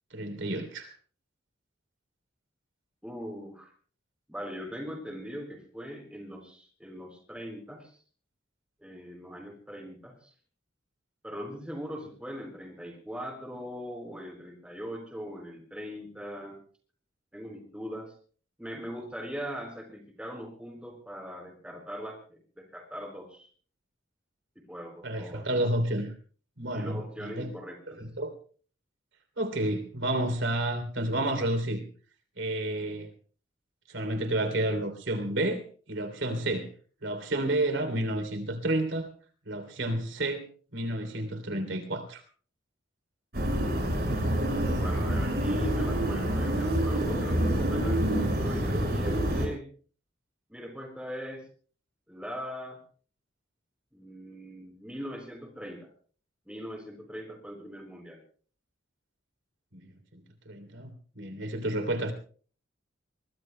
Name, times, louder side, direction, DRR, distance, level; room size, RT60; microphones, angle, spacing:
voice 1, 0.1-0.9 25.0-26.1 26.6-27.5 27.9-28.3 29.4-31.8 32.4-33.1 33.9-36.7 37.0-39.1 39.5-40.5 40.7-42.2 59.7-62.1, right 1 dB, 80° right, 8 dB, 3.2 m, -30 dB
voice 2, 3.0-3.7 4.3-7.9 8.8-10.3 11.2-16.6 17.3-18.1 18.6-23.5 24.7-25.4 26.7-28.0 43.7-44.0 44.7-49.7 50.5-51.4 52.1-52.8 53.9-55.9 56.5-58.2, equal, 5° right, 2 dB, 4.4 m, -40 dB
sound 1, 43.3-49.5, right 1 dB, 50° right, 6.2 m, -27 dB
23.5 x 23.0 x 2.2 m, 0.44 s
head